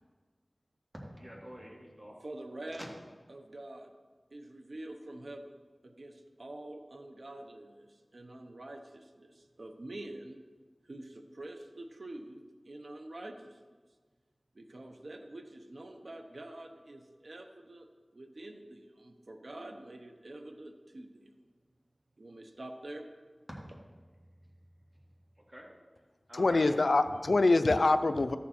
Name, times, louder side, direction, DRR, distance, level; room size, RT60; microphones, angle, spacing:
voice 1, 0.9-2.2 2.8-2.9 23.5-23.8 25.4-25.7 26.3-26.8, equal, 30° right, -3 dB, 2.4 m, -46 dB
voice 2, 2.2-2.9 3.3-3.9 4.3-5.5 5.8-10.4 10.8-13.6 14.5-21.3 22.2-23.1, right 1 dB, 70° right, 5 dB, 0.8 m, -46 dB
voice 3, 26.3-28.4, left 2 dB, 85° left, 11 dB, 0.4 m, -25 dB
13.5 x 7.1 x 4.3 m, 1.5 s
wide cardioid pair, 55°, 0 cm